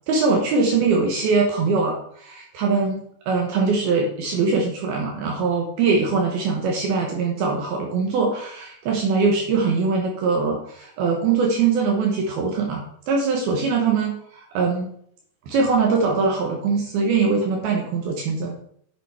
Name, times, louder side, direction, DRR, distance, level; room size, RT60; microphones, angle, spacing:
voice 1, 0.1-14.9 15.5-18.6, right 4 dB, 75° right, 0 dB, 3.0 m, -22 dB
10.5 x 6.0 x 4.3 m, 0.66 s
omnidirectional pair, 4.5 m